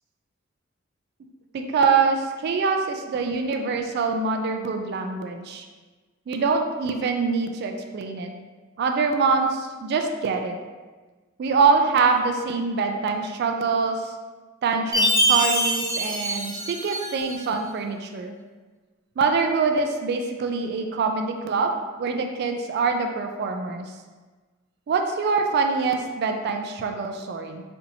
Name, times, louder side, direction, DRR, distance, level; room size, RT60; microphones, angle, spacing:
voice 1, 1.5-5.6 6.3-8.3 8.8-10.6 11.4-14.1 14.6-18.3 19.2-21.7 22.0-23.9 24.9-27.6, right 4 dB, 55° right, 5 dB, 0.3 m, -24 dB
Chime, 14.9-17.4, right 1 dB, 15° right, 0.8 m, -24 dB
4.3 x 2.6 x 2.7 m, 1.3 s
head